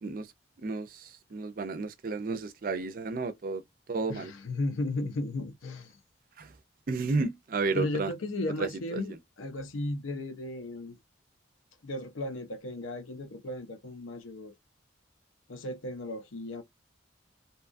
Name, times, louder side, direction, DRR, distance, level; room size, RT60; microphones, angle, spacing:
voice 1, 0.6-3.6 3.9-4.3 6.4-6.5 6.9-8.1 8.6-9.2, right 3 dB, 45° right, 0.4 m, -32 dB
voice 2, 4.1-5.9 7.7-11.0 11.8-14.5 15.5-16.6, left 2 dB, 90° left, 0.6 m, -35 dB
2.7 x 2.3 x 2.5 m
head